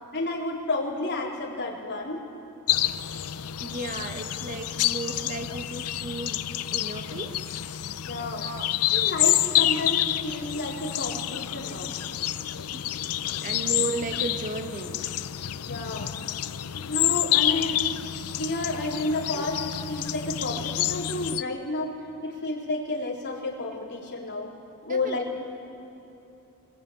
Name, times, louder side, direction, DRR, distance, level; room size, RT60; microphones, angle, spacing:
voice 1, 0.1-2.2 8.1-8.5 8.9-11.9 15.7-16.1 16.7-17.8 18.4-24.5 24.8-25.4, left 2 dB, 50° left, -3 dB, 3.9 m, -31 dB
sound 1, 2.7-21.4, left 13 dB, 80° left, 0.6 m, -28 dB
voice 2, 3.6-7.5 8.4-8.7 12.7-12.8 13.4-15.0 24.9-25.2, right 2 dB, 35° right, 5 dB, 1.5 m, -35 dB
23.0 x 20.5 x 8.8 m, 2.9 s
head